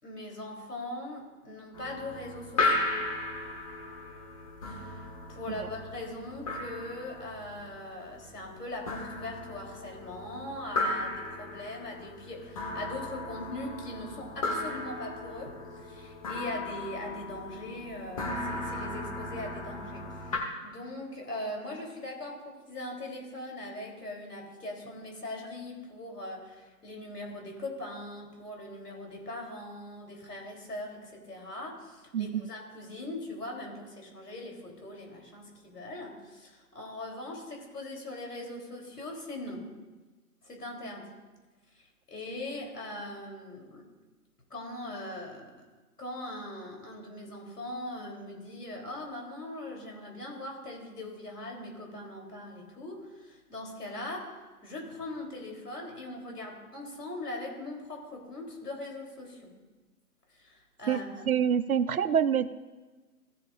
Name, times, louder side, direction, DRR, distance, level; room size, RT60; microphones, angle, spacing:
voice 1, 0.0-2.8 4.6-39.6 40.4-41.0 41.7-43.8 44.5-45.7 46.0-54.2 54.6-59.5 60.3-61.0, left 1 dB, 80° left, 0 dB, 3.5 m, -41 dB
sound 1, 1.7-20.4, left 2 dB, 25° left, 1.1 m, -36 dB
voice 2, 61.3-62.5, right 8 dB, 65° right, 15 dB, 0.6 m, -26 dB
16.5 x 7.4 x 2.5 m, 1.3 s
figure-of-eight pair, 150°, 46 cm